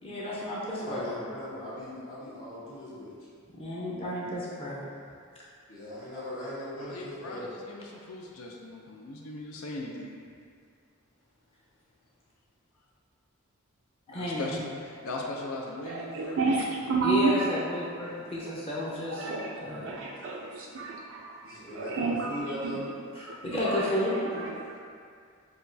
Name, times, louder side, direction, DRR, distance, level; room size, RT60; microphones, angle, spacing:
voice 1, 0.0-1.1 3.5-4.8 14.1-14.6 17.0-19.3 19.6-19.9 23.2-24.5, left 1 dB, 25° left, -7 dB, 0.6 m, -32 dB
voice 2, 0.8-3.1 5.7-7.5 21.4-22.8, equal, 65° left, -10 dB, 1.1 m, -39 dB
voice 3, 6.9-10.2 14.1-16.9, left 2 dB, 85° left, -1 dB, 0.5 m, -39 dB
voice 4, 15.9-17.5 18.4-18.5 18.8-22.7 23.3-24.8, right 4 dB, 60° right, -2 dB, 0.3 m, -31 dB
6.7 x 2.3 x 2.6 m, 2.2 s
head